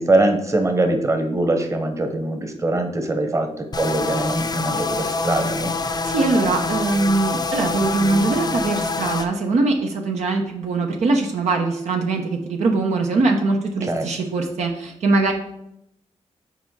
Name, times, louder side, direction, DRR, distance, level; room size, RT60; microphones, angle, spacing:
voice 1, 0.0-5.7 13.8-14.1, right 2 dB, 25° right, 5 dB, 1.1 m, -22 dB
sound 1, 3.7-9.3, left 3 dB, 35° left, 0.6 m, -25 dB
voice 2, 6.1-15.3, right 3 dB, 70° right, 2 dB, 0.9 m, -21 dB
6.0 x 4.1 x 4.7 m, 0.78 s
cardioid pair, 65°, 12 cm